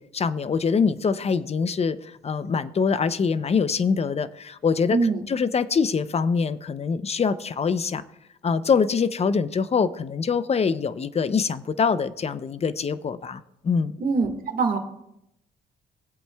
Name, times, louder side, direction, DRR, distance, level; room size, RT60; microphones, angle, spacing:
voice 1, 0.0-8.0 8.4-14.0, left 5 dB, 30° left, 14 dB, 0.6 m, -24 dB
voice 2, 4.9-5.2 14.0-14.8, right 4 dB, 45° right, 4 dB, 1.7 m, -23 dB
21.0 x 7.9 x 2.3 m, 0.81 s
cardioid pair, 90°, 20 cm